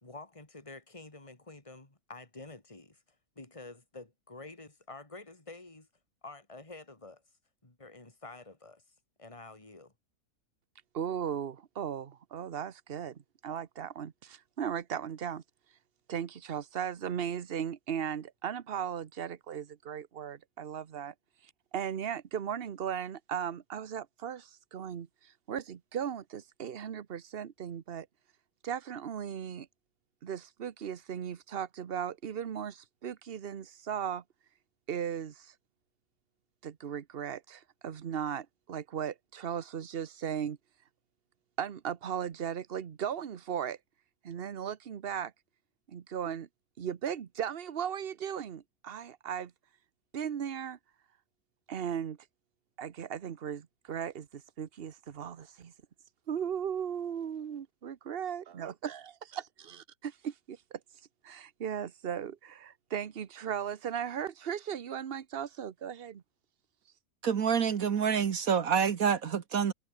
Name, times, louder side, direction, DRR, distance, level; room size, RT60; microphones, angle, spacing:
voice 1, 0.0-3.0 3.3-5.9 6.2-7.2 7.6-8.8 9.2-9.9, left 2 dB, 20° left, 3.2 m, -49 dB
voice 2, 10.9-15.4 16.1-21.1 21.7-28.1 28.6-29.7 30.2-34.2 34.9-35.5 36.6-40.6 41.6-43.8 44.2-45.3 45.9-46.5 46.8-49.5 50.1-50.8 51.7-52.2 52.8-55.7 56.3-59.4 59.7-59.8 60.2-60.8 61.2-66.2, right 8 dB, 45° right, 1.0 m, -37 dB
voice 3, 67.2-69.7, right 7 dB, 65° right, 1.6 m, -27 dB
omnidirectional pair, 1.6 m